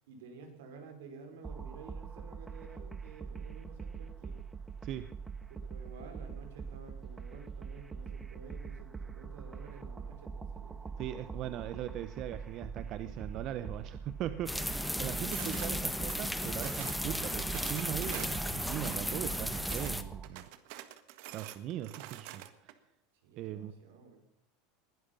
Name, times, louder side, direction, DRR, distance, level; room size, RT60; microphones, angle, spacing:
voice 1, 0.1-4.4 5.5-11.0 11.4-11.6 23.2-24.2, right 4 dB, 80° right, 5 dB, 5.2 m, -52 dB
sound 1, 1.4-20.3, right 5 dB, 15° right, 0.9 m, -44 dB
voice 2, 11.0-20.5 21.3-22.8 23.4-23.7, right 12 dB, 50° right, 12 dB, 0.9 m, -40 dB
sound 2, 14.5-20.0, left 1 dB, ahead, 1.3 m, -35 dB
sound 3, 15.3-15.7 16.1-17.0 17.4-19.9 20.2-22.7, right 14 dB, 65° right, 1.6 m, -46 dB
20.5 x 11.5 x 5.6 m, 0.83 s
supercardioid pair, 120°, 0 cm